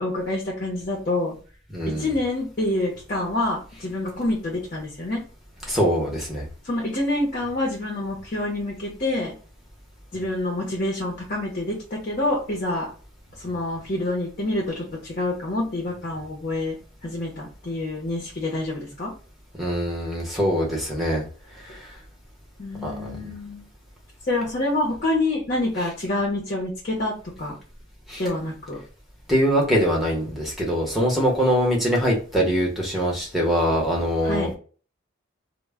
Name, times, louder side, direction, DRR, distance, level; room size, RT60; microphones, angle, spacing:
voice 1, 0.0-1.4 1.8-5.2 6.6-9.3 10.1-12.9 13.4-16.8 17.0-19.1 22.6-23.7 24.3-27.6 28.2-28.8 34.2-34.5, left 2 dB, 45° left, -1 dB, 0.6 m, -27 dB
voice 2, 1.7-2.1 5.7-6.4 19.6-21.2 21.6-21.9 22.8-23.2 28.1-28.2 29.3-34.5, equal, ahead, -3 dB, 0.7 m, -23 dB
2.1 x 2.1 x 3.3 m, 0.38 s
head